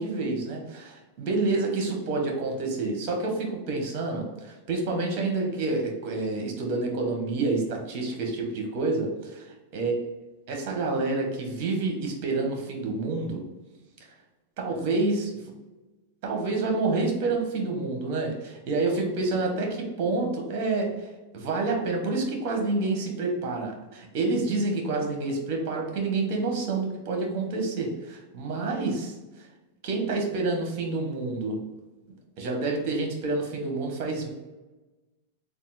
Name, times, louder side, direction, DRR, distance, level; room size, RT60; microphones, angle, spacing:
voice 1, 0.0-9.5 9.7-9.9 10.5-13.4 14.6-15.3 16.2-21.1 21.3-29.1 29.8-31.6 32.4-34.3, right 3 dB, 50° right, 2 dB, 1.2 m, -28 dB
3.5 x 2.5 x 4.1 m, 1.1 s
hypercardioid pair, 125°, 0 cm